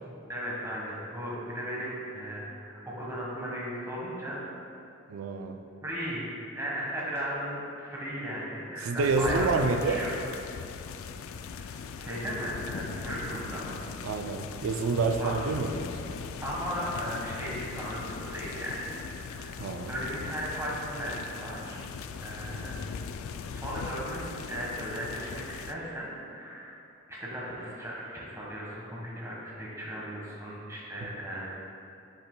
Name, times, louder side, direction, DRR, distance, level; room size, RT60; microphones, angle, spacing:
voice 1, 0.3-4.4 5.8-6.2 6.5-10.1 11.5-11.7 12.0-13.9 15.2-15.5 16.4-18.8 19.2-19.6 19.9-21.9 22.2-22.9 23.4-26.7 27.1-31.5, equal, 15° right, -5 dB, 1.3 m, -36 dB
voice 2, 5.1-5.6 8.8-10.0 14.0-16.0 19.6-19.9, right 4 dB, 85° right, 6 dB, 0.4 m, -28 dB
sound 1, 9.0-25.7, left 6 dB, 80° left, 0.3 m, -39 dB
7.8 x 7.2 x 2.3 m, 2.7 s
head